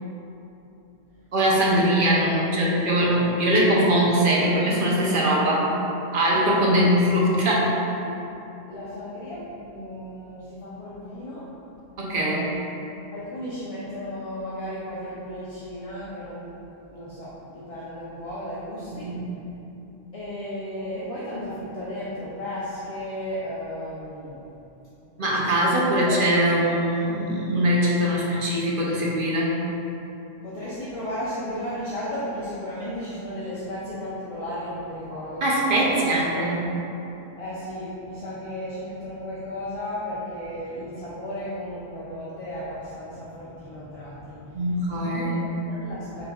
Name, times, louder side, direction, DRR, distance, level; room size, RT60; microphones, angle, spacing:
voice 1, 1.3-5.7 6.1-7.7 12.0-12.5 18.9-19.2 25.2-29.5 35.4-36.6 44.5-45.4, right 1 dB, 55° right, -5 dB, 0.8 m, -21 dB
voice 2, 8.7-11.5 13.1-16.5 16.9-19.1 20.1-24.4 25.8-26.3 30.4-35.4 35.8-36.4 37.4-44.6 44.9-46.2, equal, 40° left, -8 dB, 0.5 m, -34 dB
5.5 x 4.0 x 2.3 m, 2.9 s
omnidirectional pair, 1.1 m